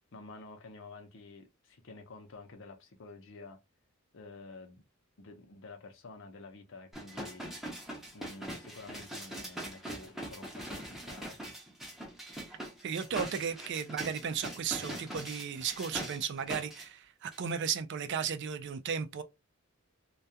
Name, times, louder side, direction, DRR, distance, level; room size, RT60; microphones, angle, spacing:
voice 1, 0.1-3.6 4.1-4.8 5.2-7.8 8.1-11.4, left 3 dB, 60° left, 0.6 m, -50 dB
sound 1, 6.9-16.9 17.3-17.4, right 1 dB, ahead, 0.6 m, -42 dB
voice 2, 12.8-19.2, right 7 dB, 55° right, 0.3 m, -35 dB
2.3 x 2.2 x 2.6 m
head